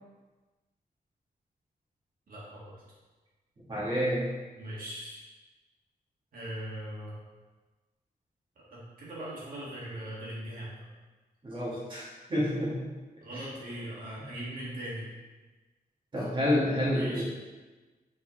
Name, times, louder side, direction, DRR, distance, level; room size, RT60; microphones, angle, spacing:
voice 1, 2.3-2.7 4.6-5.3 6.3-7.2 8.7-10.8 13.2-15.1 16.2-16.3 16.9-17.2, right 1 dB, 65° right, -7 dB, 1.9 m, -40 dB
voice 2, 3.7-4.3 11.4-12.0 12.3-12.8 16.1-17.2, equal, 35° right, -7 dB, 1.8 m, -28 dB
7.3 x 4.2 x 3.9 m, 1.3 s
wide cardioid pair, 170°, 15 cm